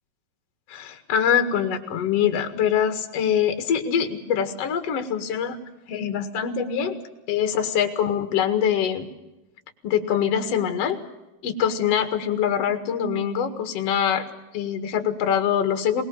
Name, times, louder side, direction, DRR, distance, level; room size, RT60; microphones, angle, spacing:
voice 1, 0.7-5.6 5.9-7.0 7.3-9.1 9.8-11.0 11.4-14.3 14.5-16.0, left 8 dB, 50° left, 7 dB, 2.6 m, -24 dB
23.5 x 20.0 x 7.1 m, 0.96 s
omnidirectional pair, 4.1 m